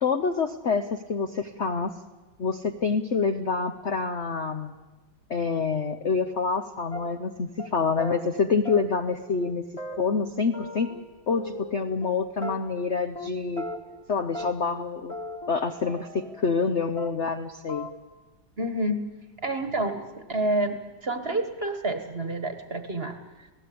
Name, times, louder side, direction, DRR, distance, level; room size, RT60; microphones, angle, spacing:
voice 1, 0.0-1.9 2.4-4.7 5.3-9.6 10.0-10.9 11.3-13.7 14.1-15.1 15.5-17.9, left 5 dB, 50° left, 6 dB, 0.9 m, -27 dB
sound 1, 6.9-7.3 7.6-7.7 8.0-8.2 8.6-9.1 9.4-9.5 9.8-11.0 11.3-12.1 12.4-12.9 13.1-13.3 13.6-14.0 14.3-14.8 15.1-16.7 17.0-17.4 17.7-17.9, left 1 dB, 15° left, 1.9 m, -38 dB
voice 2, 18.6-19.0 19.4-23.2, right 1 dB, 30° right, 7 dB, 1.5 m, -28 dB
27.0 x 17.5 x 8.6 m, 1.2 s
omnidirectional pair, 2.2 m